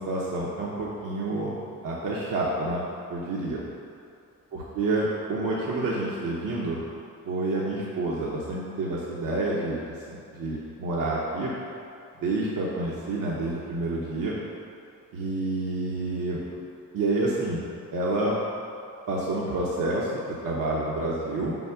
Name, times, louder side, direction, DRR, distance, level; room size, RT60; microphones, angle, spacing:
voice 1, 0.0-1.5 1.8-2.8 3.1-3.6 4.5-6.8 7.2-11.5 12.2-14.3 15.1-16.4 16.9-17.6 17.9-18.3 19.1-21.5, right 2 dB, 65° right, -5 dB, 0.9 m, -28 dB
4.6 x 4.0 x 5.7 m, 2.6 s
cardioid pair, 80°, 36 cm